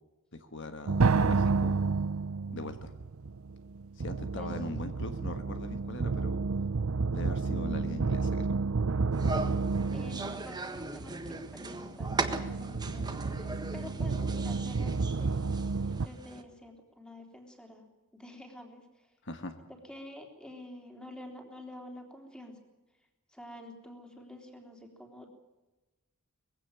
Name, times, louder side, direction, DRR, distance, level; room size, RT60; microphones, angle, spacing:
voice 1, 0.3-1.9 2.5-2.9 3.9-6.4 7.1-8.6 19.2-19.5, left 2 dB, 55° left, 8 dB, 1.5 m, -41 dB
sound 1, 0.9-16.1, right 4 dB, 65° right, 0.6 m, -31 dB
sound 2, 9.1-16.4, right 3 dB, 20° right, 1.5 m, -39 dB
voice 2, 9.9-15.4 15.9-17.9 18.1-19.1 19.9-22.6 23.3-25.3, left 1 dB, 5° left, 3 dB, 3.5 m, -48 dB
21.5 x 16.5 x 9.0 m, 1.1 s
head